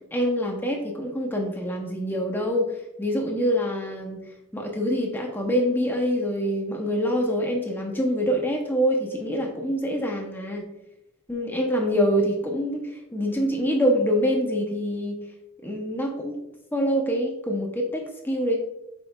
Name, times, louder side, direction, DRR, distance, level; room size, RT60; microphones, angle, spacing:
voice 1, 0.0-2.7 3.0-4.2 4.5-10.7 11.3-15.2 15.6-16.4 16.7-18.6, equal, 10° left, 1 dB, 0.8 m, -25 dB
8.2 x 5.3 x 2.4 m, 0.85 s
head